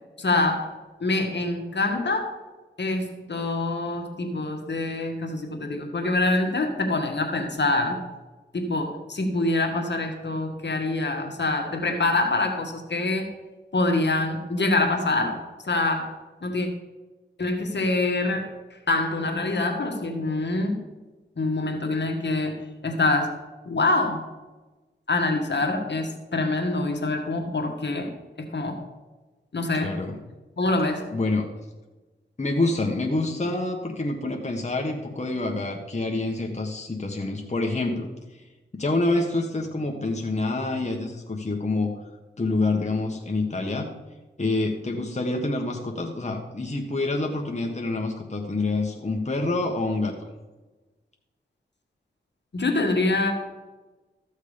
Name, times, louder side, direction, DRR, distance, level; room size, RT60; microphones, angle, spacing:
voice 1, 0.2-0.7 1.0-2.3 2.8-8.0 8.5-13.3 13.7-15.4 15.7-16.1 16.4-16.7 17.4-18.5 18.9-20.8 21.4-23.4 23.7-24.2 25.1-28.1 28.4-28.8 29.5-29.9 30.6-31.1 52.5-53.3, left 2 dB, 60° left, 3 dB, 1.8 m, -25 dB
voice 2, 29.8-30.2 31.1-31.5 32.4-38.1 38.7-41.9 42.4-43.9 44.4-50.3, left 2 dB, 35° left, 1 dB, 1.4 m, -27 dB
14.0 x 6.5 x 5.2 m, 1.2 s
cardioid pair, 50°, 20 cm